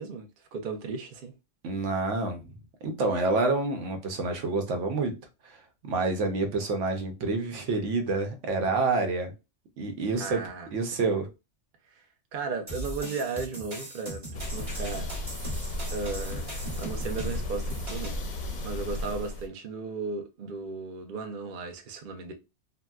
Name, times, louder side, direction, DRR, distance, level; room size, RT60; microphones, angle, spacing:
voice 1, 0.0-1.3 10.2-10.7 11.9-12.0 12.3-15.1 15.5-15.6 15.9-18.2 18.6-22.3, right 4 dB, 55° right, 0.7 m, -35 dB
voice 2, 1.6-2.4 2.8-5.1 5.4-5.6 5.8-9.3 9.8-10.4 10.7-11.3, right 3 dB, 90° right, 1.0 m, -28 dB
sound 1, 12.7-18.2, right 1 dB, 30° right, 1.1 m, -39 dB
sound 2, 14.3-19.5, left 1 dB, 50° left, 0.6 m, -34 dB
3.8 x 2.1 x 2.3 m
omnidirectional pair, 1.2 m